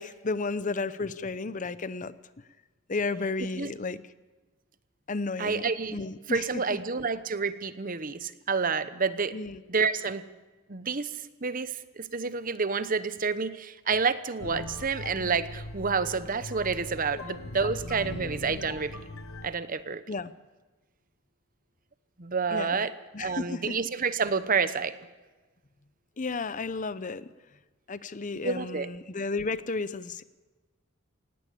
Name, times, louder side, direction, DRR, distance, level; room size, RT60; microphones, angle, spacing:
voice 1, 0.0-2.1 2.9-4.0 5.1-5.6 5.9-6.8 9.3-9.6 17.1-17.2 17.6-17.7 18.6-18.7 20.1-20.3 22.5-22.9 23.1-23.8 26.2-27.3 27.9-30.2, left 3 dB, 40° left, 16 dB, 0.7 m, -33 dB
voice 2, 5.4-6.0 6.3-9.4 9.7-10.2 10.7-11.1 11.4-18.9 19.4-20.0 22.2-22.9 23.2-25.0 28.4-28.9, right 5 dB, 40° right, 14 dB, 0.9 m, -29 dB
sound 1, 14.4-19.5, left 1 dB, 90° left, 1.3 m, -40 dB
19.0 x 17.0 x 8.5 m, 1.2 s
head